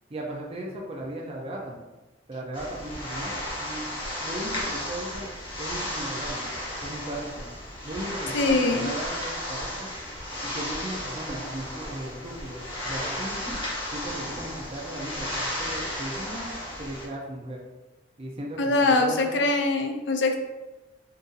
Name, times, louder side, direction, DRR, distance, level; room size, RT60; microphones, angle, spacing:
voice 1, 0.1-1.8 2.3-3.9 4.2-5.3 5.6-6.4 6.8-7.5 7.8-9.9 10.4-13.4 13.9-16.5 16.8-17.6 18.2-19.4, right 1 dB, 35° right, -2 dB, 0.6 m, -36 dB
Person Sliding on Carpet, 2.5-17.1, left 1 dB, 30° left, 1.0 m, -34 dB
voice 2, 8.3-8.9 18.6-20.4, left 2 dB, 70° left, 5 dB, 0.4 m, -23 dB
2.6 x 2.6 x 3.9 m, 1.1 s
head